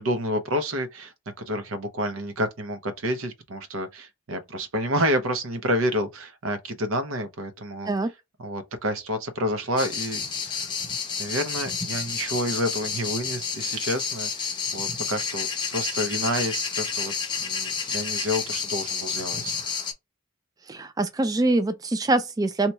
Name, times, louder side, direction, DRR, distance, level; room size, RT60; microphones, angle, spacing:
voice 1, 0.0-7.9 8.4-10.7 11.2-17.1 17.4-19.5, equal, 80° right, 0.7 m, -29 dB
sound 1, 9.8-19.9, left 6 dB, 25° left, 0.6 m, -30 dB
voice 2, 20.7-22.7, right 2 dB, 20° right, 0.3 m, -24 dB
2.9 x 2.3 x 4.1 m
head